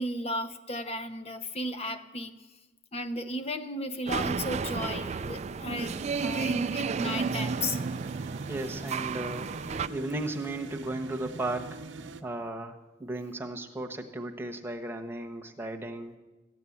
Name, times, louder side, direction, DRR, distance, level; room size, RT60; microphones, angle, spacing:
voice 1, 0.0-2.3 2.9-7.8, left 1 dB, 30° left, 10 dB, 0.9 m, -35 dB
sound 1, 4.1-9.9, right 5 dB, 35° right, 0.4 m, -32 dB
sound 2, 5.8-12.2, right 3 dB, 70° right, 0.9 m, -44 dB
voice 2, 8.5-9.5 9.9-11.8 12.2-16.2, right 2 dB, 10° right, 2 dB, 1.1 m, -35 dB
14.5 x 9.3 x 8.5 m, 1.1 s
head